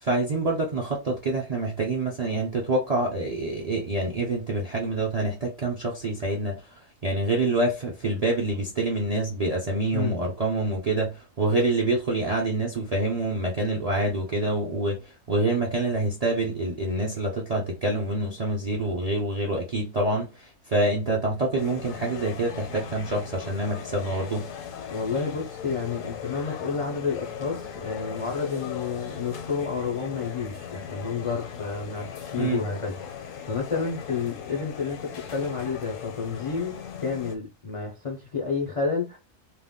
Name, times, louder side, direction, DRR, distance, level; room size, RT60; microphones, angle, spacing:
voice 1, 0.0-24.5 32.4-32.6, right 2 dB, 55° right, 0.4 m, -26 dB
sound 1, 21.6-37.4, left 7 dB, 80° left, 1.0 m, -38 dB
voice 2, 24.9-39.2, left 5 dB, 55° left, 0.3 m, -30 dB
2.4 x 2.1 x 3.5 m
omnidirectional pair, 1.4 m